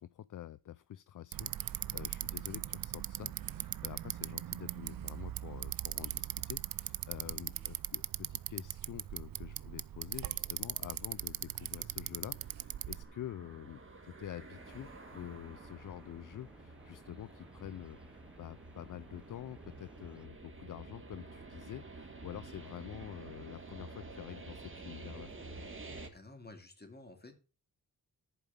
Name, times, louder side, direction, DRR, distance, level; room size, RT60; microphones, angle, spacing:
voice 1, 0.0-25.3, left 11 dB, 60° left, 17 dB, 0.5 m, -47 dB
Bicycle, 1.3-13.0, right 12 dB, 65° right, 0.5 m, -40 dB
voice 2, 7.2-7.7 11.7-11.9 26.1-27.3, left 2 dB, 25° left, 5 dB, 2.5 m, -53 dB
sound 1, 10.0-26.1, right 2 dB, 35° right, 1.9 m, -51 dB
sound 2, 14.6-20.3, equal, 5° right, 0.8 m, -60 dB
11.0 x 5.0 x 6.8 m, 0.34 s
wide cardioid pair, 85°, 37 cm